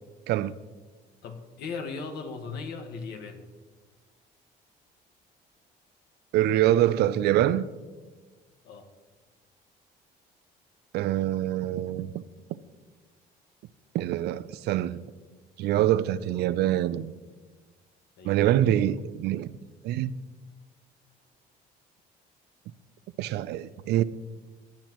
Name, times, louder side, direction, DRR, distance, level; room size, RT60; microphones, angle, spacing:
voice 1, 1.2-3.4 8.6-8.9 16.2-16.4 18.2-18.6, left 4 dB, 75° left, 1.6 m, -38 dB
voice 2, 6.3-7.7 10.9-12.2 13.9-15.0 15.6-17.1 18.2-19.5 19.8-20.1 23.2-24.0, right 12 dB, 75° right, 0.5 m, -25 dB
17.5 x 10.0 x 3.0 m
cardioid pair, 110°, 17 cm